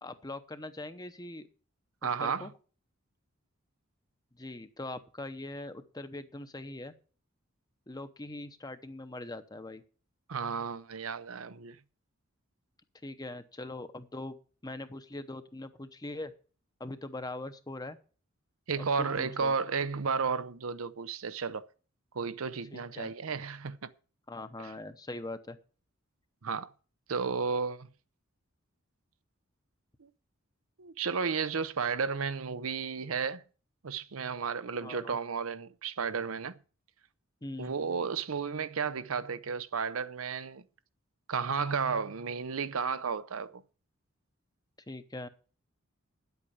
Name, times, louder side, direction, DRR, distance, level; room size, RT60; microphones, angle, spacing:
voice 1, 0.0-1.5 2.2-2.5 4.3-6.9 7.9-9.8 13.0-16.3 16.8-18.0 19.0-19.5 22.7-23.1 24.3-25.6 34.8-35.2 37.4-37.7 44.9-45.3, left 2 dB, 20° left, 0.8 m, -42 dB
voice 2, 2.0-2.5 10.3-11.8 18.7-21.7 22.1-23.9 26.4-26.7 27.1-27.9 30.0-30.1 30.8-33.4 33.8-36.6 37.6-40.6 41.3-43.6, right 5 dB, 80° right, 0.7 m, -33 dB
9.8 x 8.1 x 7.1 m
head